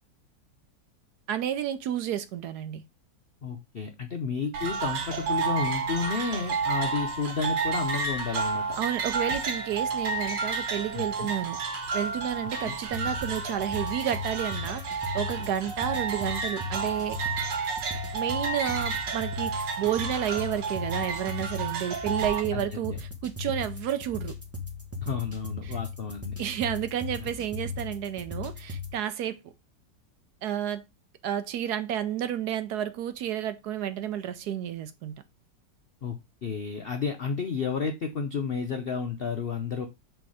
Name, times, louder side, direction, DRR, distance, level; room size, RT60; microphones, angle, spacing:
voice 1, 1.3-2.8 8.8-17.2 18.1-24.4 25.6-25.8 26.4-29.4 30.4-30.8 31.2-35.1, right 10 dB, 70° right, 1.1 m, -31 dB
voice 2, 3.4-8.8 10.9-11.3 12.6-12.8 22.5-23.0 25.0-26.4 36.0-39.9, left 5 dB, 65° left, 0.5 m, -31 dB
sound 1, 4.5-22.4, right 4 dB, 85° right, 1.8 m, -31 dB
sound 2, 12.9-28.9, left 4 dB, 10° right, 0.9 m, -38 dB
6.3 x 3.4 x 4.8 m
omnidirectional pair, 1.9 m